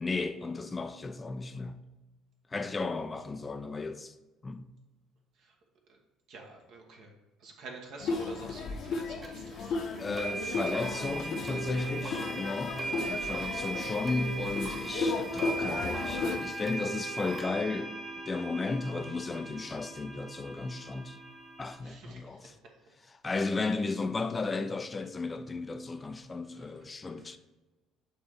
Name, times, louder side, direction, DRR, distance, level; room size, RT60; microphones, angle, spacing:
voice 1, 0.0-1.8 2.5-4.1 4.4-4.7 10.0-18.0 18.3-21.2 21.6-22.6 23.0-27.4, left 3 dB, 25° left, 0.5 m, -34 dB
voice 2, 6.3-7.1 7.4-9.8 12.9-13.0 21.8-22.4, right 3 dB, 55° right, 1.3 m, -47 dB
sound 1, 8.0-16.4, left 4 dB, 50° left, 0.9 m, -35 dB
sound 2, 9.2-9.3 10.2-21.7, right 3 dB, 25° right, 1.1 m, -38 dB
8.7 x 3.6 x 4.5 m
figure-of-eight pair, 55°, 0 cm